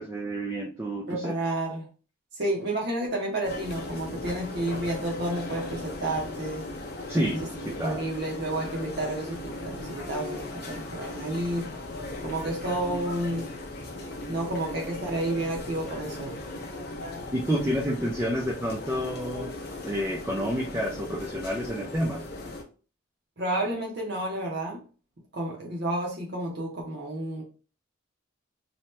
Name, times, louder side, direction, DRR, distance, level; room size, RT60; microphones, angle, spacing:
voice 1, 0.0-1.3 7.1-8.0 17.3-22.2, equal, 10° right, -2 dB, 0.3 m, -29 dB
voice 2, 1.1-1.8 2.3-6.7 7.8-11.7 12.2-13.5 14.3-16.3 23.4-24.8 25.3-27.4, right 1 dB, 55° right, -2 dB, 0.7 m, -30 dB
sound 1, 3.4-22.6, left 2 dB, 50° left, 0.6 m, -38 dB
2.8 x 2.2 x 3.1 m, 0.37 s
head